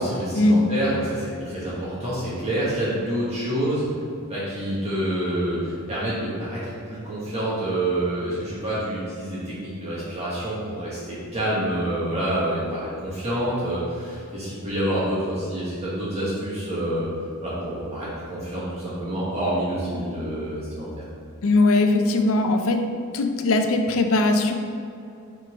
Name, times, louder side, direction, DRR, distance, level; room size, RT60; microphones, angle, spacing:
voice 1, 0.0-3.9 4.3-17.1 17.4-21.0, right 1 dB, 30° right, -9 dB, 1.3 m, -27 dB
voice 2, 21.4-22.8 23.1-24.5, left 2 dB, 65° left, 6 dB, 0.5 m, -20 dB
5.5 x 3.9 x 4.8 m, 2.5 s
head